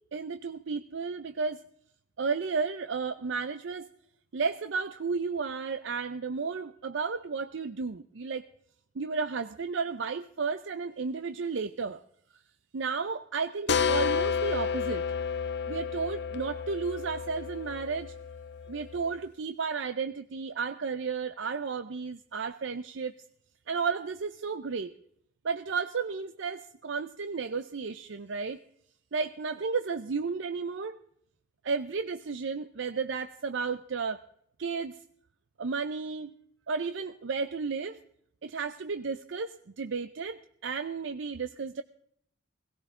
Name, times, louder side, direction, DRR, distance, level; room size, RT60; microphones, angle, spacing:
voice 1, 0.1-1.6 2.2-3.9 4.3-8.5 9.0-12.0 12.7-15.0 15.7-18.1 18.7-23.1 23.7-24.9 25.4-28.6 29.1-31.0 31.6-34.2 34.6-35.0 35.6-36.3 36.7-38.0 38.4-41.8, right 5 dB, 65° right, 10 dB, 0.5 m, -33 dB
sound 1, 13.7-19.1, left 6 dB, 55° left, 0.7 m, -31 dB
17.5 x 17.5 x 3.7 m, 0.69 s
head